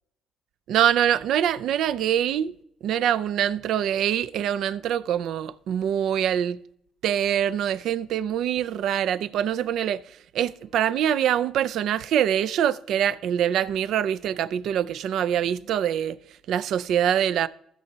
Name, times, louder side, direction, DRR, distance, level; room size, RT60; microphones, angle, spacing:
voice 1, 0.7-2.5 2.8-6.6 7.0-16.2 16.5-17.5, right 10 dB, 70° right, 0.4 m, -24 dB
15.5 x 6.8 x 2.8 m
supercardioid pair, 70°, 0 cm